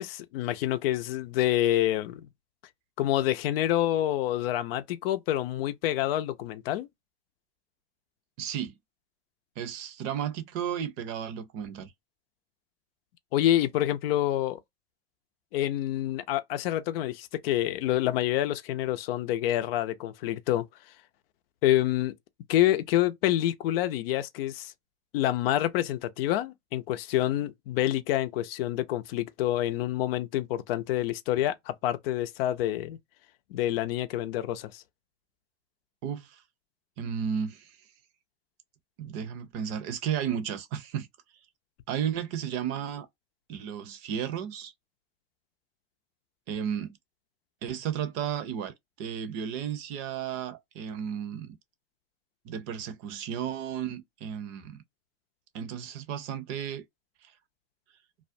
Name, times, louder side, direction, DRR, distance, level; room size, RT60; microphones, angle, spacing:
voice 1, 0.0-2.3 3.0-6.9 13.3-14.6 15.5-20.6 21.6-22.1 22.5-24.7 25.1-33.0 33.5-34.8, left 13 dB, 75° left, 0.5 m, -27 dB
voice 2, 8.4-8.8 9.6-11.9 36.0-36.4 37.0-37.7 39.0-41.1 41.9-43.1 43.5-44.7 46.5-46.9 47.6-51.6 52.4-54.8 55.5-56.8, right 8 dB, 55° right, 0.7 m, -33 dB
2.4 x 2.1 x 2.5 m
hypercardioid pair, 105°, 30 cm